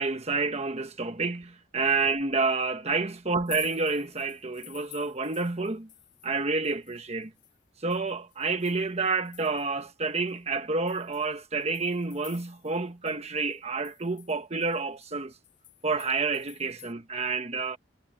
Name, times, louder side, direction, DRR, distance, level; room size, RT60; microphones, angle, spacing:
voice 1, 0.0-5.9 6.2-7.3 7.8-15.3 15.8-17.8, right 4 dB, 35° right, 1.2 m, -29 dB
sound 1, 3.3-6.4 6.6-9.8 10.3-10.4 10.9-12.8 13.1-13.2 13.5-16.9, left 16 dB, 70° left, 4.4 m, -49 dB
head